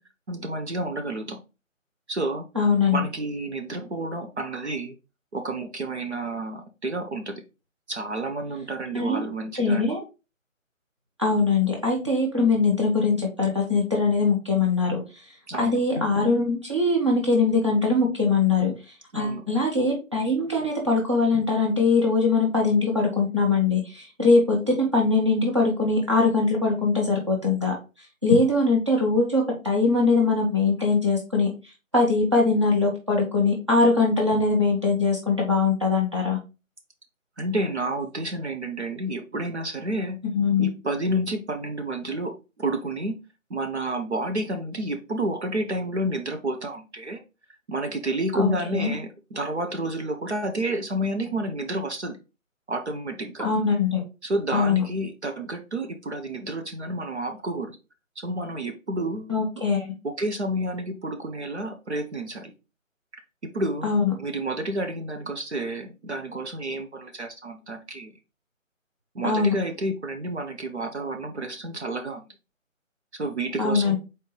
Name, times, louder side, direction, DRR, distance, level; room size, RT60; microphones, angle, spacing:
voice 1, 0.3-1.4 2.1-2.5 2.9-5.0 5.3-7.4 7.9-9.9 15.5-15.8 19.1-19.4 37.4-40.2 40.6-43.2 43.5-47.2 47.7-52.2 52.7-53.5 54.2-57.8 58.2-59.3 60.0-62.5 63.1-63.9 64.2-68.1 69.1-72.2 73.1-74.0, right 1 dB, 55° right, 6 dB, 0.8 m, -30 dB
voice 2, 2.5-3.0 8.9-9.2 9.6-10.0 11.2-15.0 15.6-18.7 19.1-27.7 28.2-31.5 31.9-36.4 40.3-40.7 48.3-48.9 53.4-54.0 54.5-54.8 59.3-59.9 63.8-64.1 69.2-69.5 73.6-74.0, left 3 dB, 20° right, -2 dB, 0.8 m, -22 dB
4.2 x 3.9 x 3.1 m, 0.28 s
hypercardioid pair, 180°, 40 cm